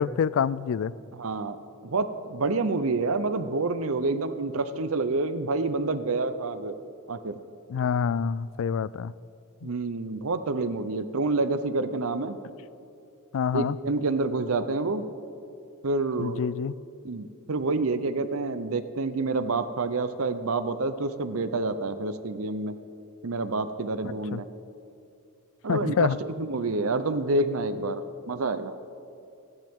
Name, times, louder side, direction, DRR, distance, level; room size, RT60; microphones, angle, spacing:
voice 1, 0.0-0.9 7.7-9.1 13.3-13.8 16.2-16.7 24.3-24.4 25.7-26.2, left 7 dB, 60° left, 19 dB, 0.3 m, -26 dB
voice 2, 1.1-6.8 7.1-7.4 9.6-12.4 13.5-15.1 15.8-16.4 17.0-22.8 23.2-24.5 25.6-28.7, right 3 dB, 65° right, 11 dB, 0.7 m, -28 dB
28.5 x 10.5 x 3.7 m, 2.5 s
head